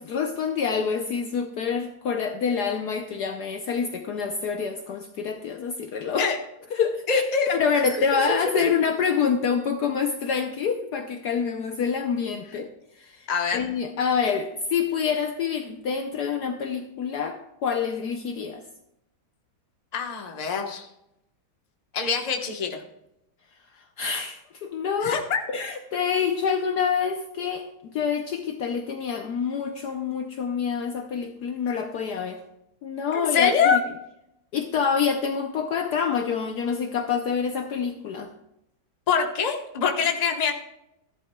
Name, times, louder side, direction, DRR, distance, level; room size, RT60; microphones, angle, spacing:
voice 1, 0.0-6.3 6.7-7.2 7.5-12.7 13.0-13.2 13.5-18.6 24.0-25.2 25.5-32.4 32.8-33.8 34.5-38.3, left 6 dB, 65° left, 5 dB, 1.1 m, -27 dB
voice 2, 7.1-7.6 8.1-8.4 13.3-13.6 19.9-20.9 21.9-22.8 25.0-25.4 33.1-33.8 39.1-40.5, left 6 dB, 25° left, 2 dB, 0.9 m, -24 dB
14.5 x 11.5 x 2.3 m, 0.83 s
omnidirectional pair, 2.1 m